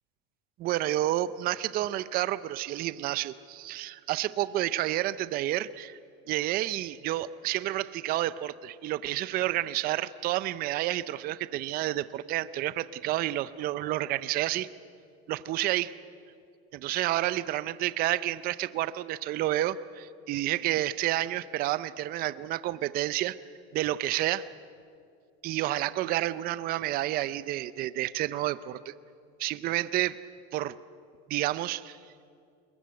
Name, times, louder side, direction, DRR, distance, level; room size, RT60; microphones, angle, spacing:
voice 1, 0.6-6.0 6.3-14.7 15.3-15.9 16.7-23.4 23.7-24.5 25.4-28.9 29.4-30.2 30.5-30.7 31.3-32.0, right 14 dB, 30° right, 16 dB, 0.5 m, -30 dB
21.5 x 21.0 x 9.4 m, 2.3 s
supercardioid pair, 155°, 31 cm